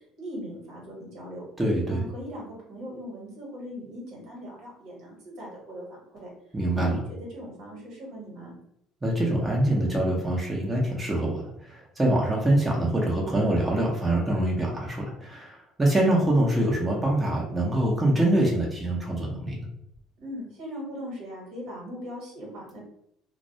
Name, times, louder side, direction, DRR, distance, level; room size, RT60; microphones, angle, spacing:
voice 1, 0.0-1.4 1.8-6.3 6.7-8.5 20.2-22.8, equal, 75° right, -2 dB, 1.1 m, -39 dB
voice 2, 1.6-2.0 6.5-7.0 9.0-19.7, right 1 dB, 15° right, -3 dB, 0.7 m, -24 dB
2.2 x 2.1 x 2.7 m, 0.76 s
supercardioid pair, 80°, 0 cm